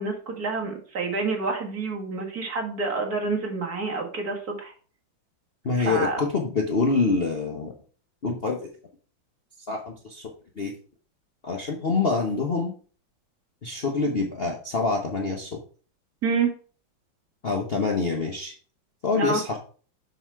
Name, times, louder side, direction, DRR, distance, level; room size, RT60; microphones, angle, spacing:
voice 1, 0.0-4.7 5.8-6.3 16.2-16.5 19.1-19.4, right 4 dB, 50° right, 0 dB, 2.2 m, -28 dB
voice 2, 5.6-7.7 8.2-8.7 9.7-10.3 10.6-10.7 11.4-12.7 13.6-15.6 17.4-18.5 19.0-19.6, left 4 dB, 40° left, 1 dB, 0.9 m, -26 dB
6.9 x 5.9 x 4.6 m, 0.41 s
omnidirectional pair, 2.1 m